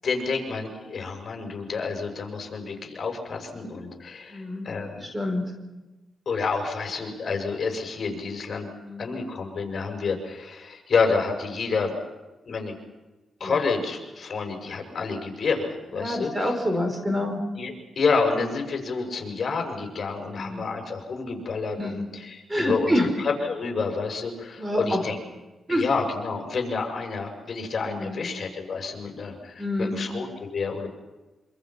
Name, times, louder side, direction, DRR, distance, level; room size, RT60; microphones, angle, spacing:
voice 1, 0.0-5.1 6.3-8.7 9.0-12.0 12.5-12.7 13.4-16.5 17.5-25.2 25.7-30.9, left 4 dB, 50° left, 3 dB, 7.0 m, -29 dB
voice 2, 4.3-4.7 5.0-5.4 8.8-9.1 13.4-13.6 15.9-17.4 20.2-20.6 21.8-22.0 22.5-23.1 24.6-25.0 25.7-25.8 27.9-28.3 29.6-30.1, left 1 dB, 15° right, 5 dB, 4.9 m, -27 dB
26.5 x 26.5 x 6.0 m, 1.1 s
cardioid pair, 85°, 0 cm